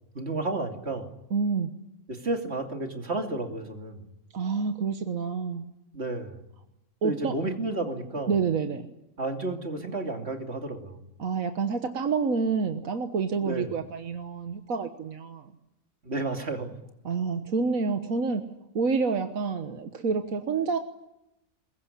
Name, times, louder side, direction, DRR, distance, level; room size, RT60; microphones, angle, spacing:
voice 1, 0.1-1.1 2.1-4.0 5.9-6.4 7.0-8.3 9.2-11.0 13.4-13.7 16.0-16.7, right 2 dB, 55° right, 4 dB, 3.0 m, -31 dB
voice 2, 1.3-1.7 4.3-5.6 7.0-7.3 8.3-8.9 11.2-15.5 17.0-18.5 18.8-20.8, right 5 dB, 90° right, 7 dB, 1.7 m, -28 dB
22.5 x 21.5 x 9.9 m, 0.88 s
omnidirectional pair, 1.4 m